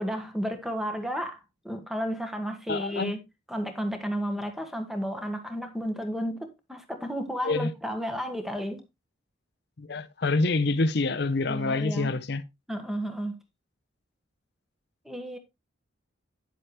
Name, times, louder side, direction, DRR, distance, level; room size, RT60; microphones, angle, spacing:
voice 1, 0.0-3.2 3.5-8.8 11.4-12.2 12.7-13.4 15.0-15.4, equal, ahead, 1.4 m, -32 dB
voice 2, 2.7-3.2 7.4-7.7 9.8-12.4, left 3 dB, 60° left, 0.7 m, -26 dB
9.6 x 7.8 x 3.1 m
head